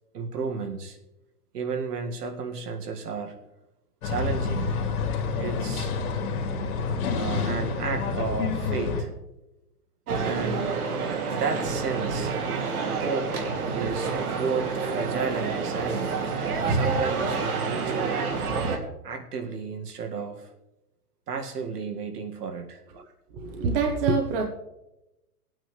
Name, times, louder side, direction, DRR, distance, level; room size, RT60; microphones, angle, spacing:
voice 1, 0.1-1.0 1.5-3.4 4.0-4.8 5.4-5.9 7.2-9.1 10.2-10.7 11.3-12.3 12.9-13.3 13.7-16.2 16.7-18.2 19.0-20.5 21.3-22.8, right 5 dB, 85° right, 5 dB, 2.1 m, -32 dB
sound 1, 4.0-9.0, left 4 dB, 65° left, 2.6 m, -28 dB
sound 2, 10.1-18.8, right 4 dB, 70° right, 2.4 m, -28 dB
voice 2, 23.3-24.4, right 4 dB, 35° right, 3 dB, 1.2 m, -25 dB
18.0 x 8.8 x 3.3 m, 0.94 s
hypercardioid pair, 155°, 46 cm